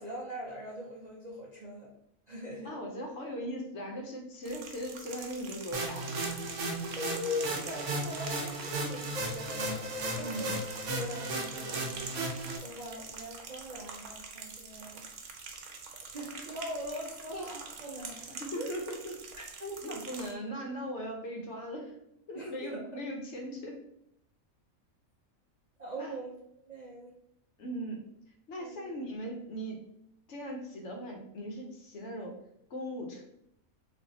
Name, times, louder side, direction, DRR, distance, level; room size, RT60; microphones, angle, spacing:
voice 1, 0.0-1.9 2.3-2.7 6.9-10.6 10.9-12.0 12.6-15.0 16.1-18.7 19.4-19.9 22.3-22.9 25.8-26.4 26.7-27.2 28.6-28.9, left 1 dB, 50° right, -4 dB, 0.5 m, -41 dB
voice 2, 2.6-6.1 10.1-10.5 18.3-19.2 19.8-21.9 22.3-23.8 26.0-26.1 27.6-28.1 28.5-29.9 30.3-32.4 32.7-33.2, equal, 60° left, 1 dB, 1.0 m, -39 dB
sound 1, 4.4-20.3, right 5 dB, 85° right, 1.2 m, -45 dB
sound 2, 5.7-12.6, right 2 dB, 65° right, 0.9 m, -35 dB
3.4 x 2.5 x 4.0 m, 0.74 s
omnidirectional pair, 1.5 m